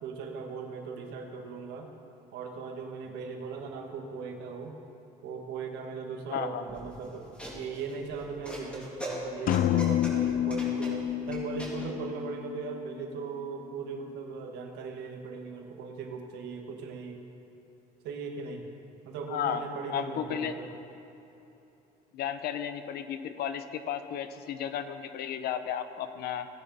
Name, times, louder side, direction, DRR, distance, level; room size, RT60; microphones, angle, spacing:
voice 1, 0.0-1.9 2.3-4.7 5.2-17.2 18.0-18.7 19.0-20.7, right 5 dB, 90° right, 3 dB, 1.5 m, -38 dB
voice 2, 6.3-6.6 19.3-19.6 19.9-20.6 22.1-26.5, left 9 dB, 70° left, 10 dB, 0.7 m, -33 dB
sound 1, 6.7-11.9, right 1 dB, 5° left, 2.7 m, -41 dB
sound 2, 9.5-13.3, left 11 dB, 55° left, 0.4 m, -29 dB
16.0 x 10.0 x 4.1 m, 2.9 s
cardioid pair, 110°, 17 cm